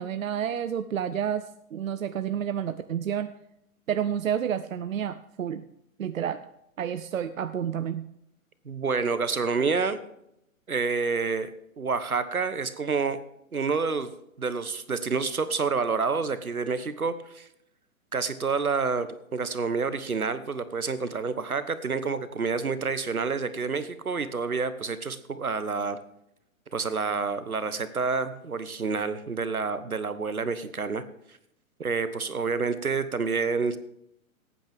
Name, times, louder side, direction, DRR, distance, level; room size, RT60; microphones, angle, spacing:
voice 1, 0.0-1.5 1.7-3.3 3.9-5.6 6.0-6.4 6.8-8.1, right 9 dB, 70° right, 11 dB, 0.7 m, -29 dB
voice 2, 8.6-10.0 10.7-11.5 11.8-13.2 13.5-14.1 14.4-17.5 18.1-26.0 26.7-31.0 31.8-33.8, right 4 dB, 85° right, 13 dB, 1.2 m, -28 dB
18.0 x 9.1 x 3.5 m, 0.79 s
figure-of-eight pair, 115°, 42 cm